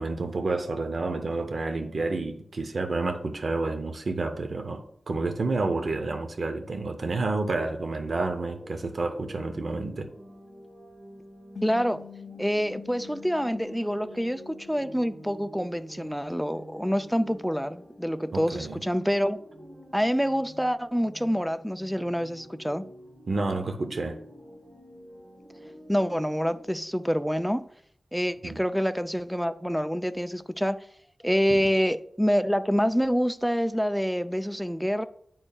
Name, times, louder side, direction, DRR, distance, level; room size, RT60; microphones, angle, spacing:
voice 1, 0.0-10.1 18.3-18.8 23.3-24.2 28.4-28.6 31.5-31.6, right 3 dB, 65° right, 0.6 m, -30 dB
sound 1, 7.9-26.6, equal, 80° right, 1.1 m, -48 dB
sound 2, 11.6-16.2, left 9 dB, 80° left, 0.4 m, -47 dB
voice 2, 11.6-12.0 12.4-19.4 19.9-22.8 25.9-27.7 28.1-30.8 31.2-35.0, equal, ahead, 0.3 m, -27 dB
8.6 x 5.4 x 2.3 m
wide cardioid pair, 105°, 0 cm